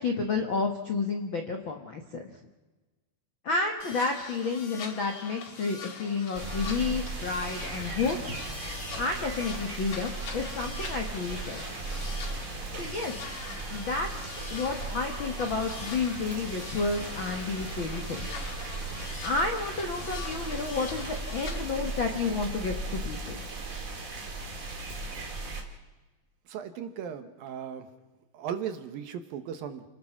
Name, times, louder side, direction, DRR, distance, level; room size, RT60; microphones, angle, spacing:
voice 1, 0.0-2.2 3.4-8.2 9.0-11.7 12.8-13.1 13.7-14.1 14.5-18.3 19.2-23.4, left 4 dB, 65° left, 4 dB, 1.2 m, -31 dB
sound 1, 3.8-21.6, left 5 dB, 50° left, 1.9 m, -43 dB
sound 2, 6.3-25.6, right 3 dB, 25° right, 1.9 m, -37 dB
voice 2, 26.5-27.9 28.3-29.9, right 8 dB, 65° right, 8 dB, 2.8 m, -37 dB
29.0 x 19.0 x 6.0 m, 1.2 s
omnidirectional pair, 4.7 m